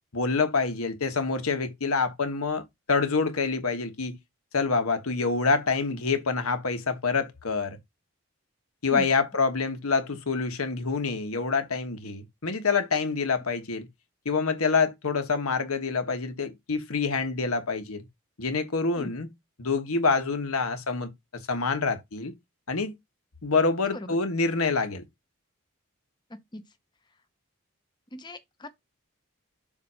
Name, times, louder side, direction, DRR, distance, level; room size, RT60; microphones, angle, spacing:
voice 1, 0.1-4.2 4.5-7.8 8.8-13.9 14.2-18.0 18.4-19.3 19.6-21.1 21.5-22.3 22.7-22.9 23.4-25.0, left 4 dB, 90° left, 1.3 m, -26 dB
voice 2, 28.1-28.7, left 1 dB, 20° left, 0.7 m, -38 dB
7.2 x 2.7 x 5.5 m
head